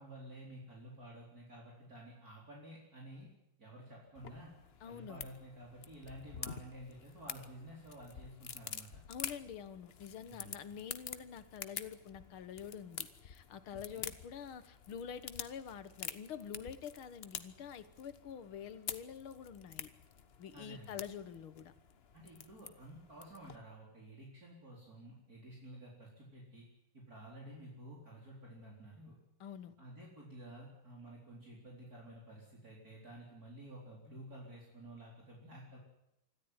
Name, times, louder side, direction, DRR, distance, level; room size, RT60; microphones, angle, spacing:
voice 1, 0.0-3.3 3.6-4.5 4.9-9.0 10.3-10.5 13.7-14.1 20.5-21.0 22.1-26.6 26.9-29.2 29.8-35.8, right 1 dB, 45° right, -3 dB, 4.6 m, -52 dB
sound 1, 4.1-23.6, left 7 dB, 45° left, 0.8 m, -48 dB
voice 2, 4.8-5.3 9.1-19.9 20.4-21.7 29.4-29.7, left 8 dB, 80° left, 12 dB, 2.2 m, -47 dB
25.5 x 14.0 x 9.7 m, 0.85 s
omnidirectional pair, 2.3 m